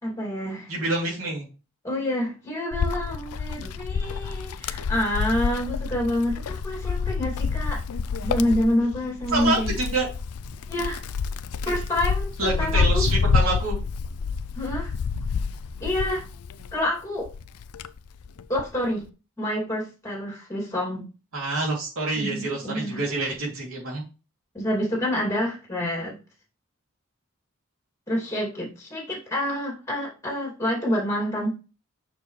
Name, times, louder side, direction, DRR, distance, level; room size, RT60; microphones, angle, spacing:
voice 1, 0.0-0.7 1.8-7.8 8.2-9.7 10.7-11.0 11.6-13.0 14.5-14.9 15.8-16.2 16.7-17.3 18.5-19.1 19.4-21.0 22.2-23.0 24.5-26.1 28.1-31.5, left 1 dB, 15° left, -2 dB, 2.7 m, -27 dB
voice 2, 0.7-1.5 9.3-10.1 11.6-11.7 12.4-13.8 21.3-24.0, right 2 dB, 70° right, -3 dB, 3.0 m, -27 dB
Wind, 2.7-16.8 17.3-18.8, left 5 dB, 90° left, 0.5 m, -28 dB
6.8 x 6.1 x 3.3 m, 0.33 s
head